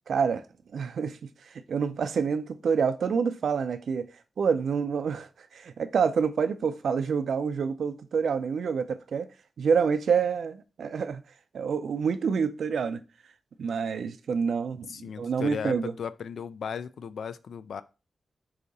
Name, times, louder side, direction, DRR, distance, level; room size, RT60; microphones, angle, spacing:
voice 1, 0.1-0.4 0.7-1.2 1.7-4.1 4.4-5.3 5.5-9.3 9.6-11.2 11.5-13.0 13.6-15.9, right 6 dB, 85° right, 0.4 m, -27 dB
voice 2, 14.9-17.8, left 7 dB, 85° left, 0.3 m, -36 dB
4.8 x 2.8 x 4.0 m
wide cardioid pair, 95°, 0 cm